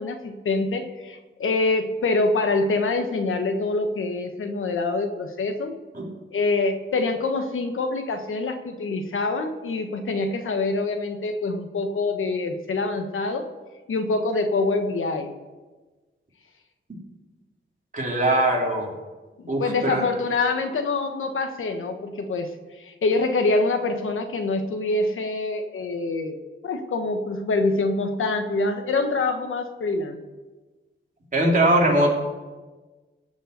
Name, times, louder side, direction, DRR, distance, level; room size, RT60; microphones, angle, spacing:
voice 1, 0.0-5.7 6.3-13.5 13.9-15.3 19.4-26.4 26.6-30.2, left 3 dB, 85° left, 6 dB, 1.2 m, -25 dB
voice 2, 17.9-18.9 19.5-20.0 31.3-32.1, right 1 dB, 40° right, -2 dB, 3.2 m, -21 dB
16.0 x 5.4 x 8.1 m, 1.3 s
wide cardioid pair, 85°, 20 cm